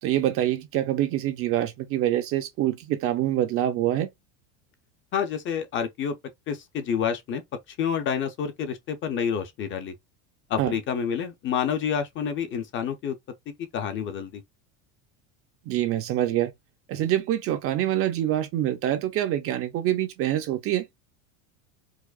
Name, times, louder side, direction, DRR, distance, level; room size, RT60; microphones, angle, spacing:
voice 1, 0.0-4.1 10.6-10.7 15.7-16.5 16.9-20.9, right 12 dB, 35° right, 0.4 m, -25 dB
voice 2, 5.1-6.1 6.5-7.4 7.8-9.9 10.5-13.1 13.7-14.4, left 7 dB, 30° left, 0.5 m, -28 dB
4.7 x 2.0 x 2.3 m
supercardioid pair, 140°, 41 cm